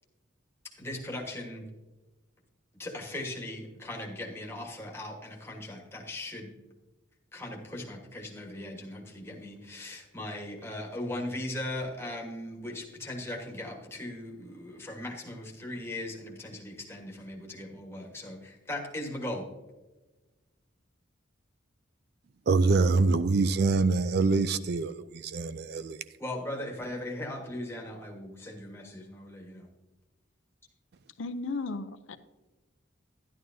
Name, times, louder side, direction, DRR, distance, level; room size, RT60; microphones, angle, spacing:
voice 1, 0.7-1.7 2.7-6.6 7.3-19.5 26.2-29.7, left 1 dB, 15° left, 1.3 m, -38 dB
voice 2, 22.5-26.0, right 3 dB, 55° right, 0.4 m, -25 dB
voice 3, 31.2-32.2, left 3 dB, 80° left, 0.6 m, -35 dB
11.0 x 11.0 x 2.7 m
head